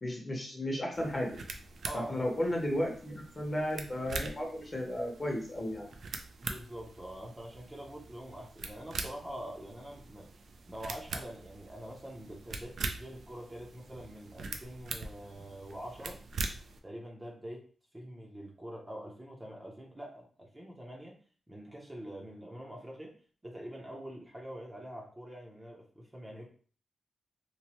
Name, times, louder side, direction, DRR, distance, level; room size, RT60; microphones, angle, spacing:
voice 1, 0.0-1.4 1.9-5.9, left 1 dB, 25° left, 0 dB, 0.8 m, -34 dB
sound 1, 0.9-16.8, right 3 dB, 65° right, 0.4 m, -43 dB
voice 2, 1.8-2.3 6.4-10.3 10.7-16.2 16.8-17.6 17.9-21.1 21.5-23.1 23.4-26.5, equal, 15° right, -2 dB, 0.6 m, -45 dB
3.0 x 2.1 x 2.9 m, 0.43 s
wide cardioid pair, 130°, 0 cm